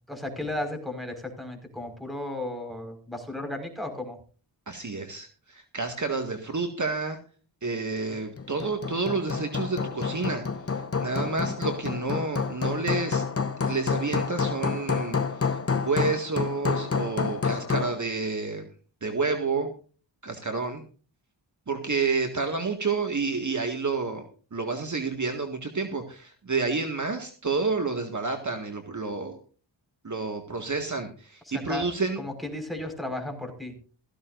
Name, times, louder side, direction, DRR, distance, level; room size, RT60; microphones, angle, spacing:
voice 1, 0.1-4.2 31.7-31.9 32.2-33.7, left 1 dB, ahead, 5 dB, 5.3 m, -34 dB
voice 2, 4.7-7.2 7.6-10.4 11.0-13.2 13.6-18.7 19.0-19.7 20.2-20.8 21.7-24.2 24.5-29.4 30.0-32.2, right 4 dB, 40° right, 4 dB, 2.1 m, -29 dB
Hammer, 8.4-18.0, left 5 dB, 30° left, 1.1 m, -29 dB
16.5 x 15.0 x 2.6 m, 0.38 s
wide cardioid pair, 80°, 44 cm